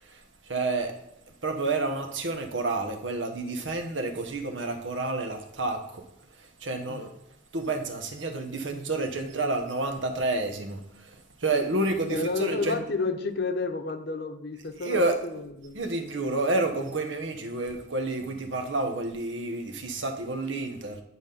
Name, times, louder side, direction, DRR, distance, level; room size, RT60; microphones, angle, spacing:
voice 1, 0.0-0.9 1.4-6.0 6.4-7.1 7.5-12.8 14.8-15.2 15.7-21.0, right 2 dB, 90° right, 5 dB, 1.1 m, -29 dB
voice 2, 12.1-15.8, left 3 dB, 60° left, 8 dB, 0.8 m, -31 dB
9.5 x 4.1 x 5.3 m, 0.81 s
head